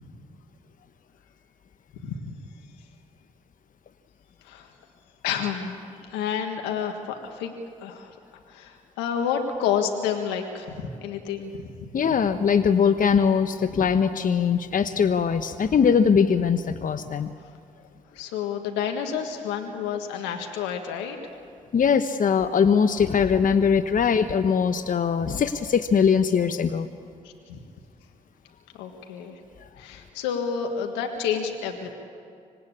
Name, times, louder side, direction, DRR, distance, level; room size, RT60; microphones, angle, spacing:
voice 1, 5.2-7.5 7.8-8.1 8.5-12.0 18.1-21.2 27.2-27.6 28.8-29.4 29.8-31.9, left 7 dB, 85° left, 4 dB, 1.7 m, -30 dB
voice 2, 11.9-17.3 21.7-26.9, left 6 dB, 50° left, 10 dB, 1.0 m, -21 dB
26.0 x 19.0 x 8.6 m, 2.3 s
hypercardioid pair, 45°, 18 cm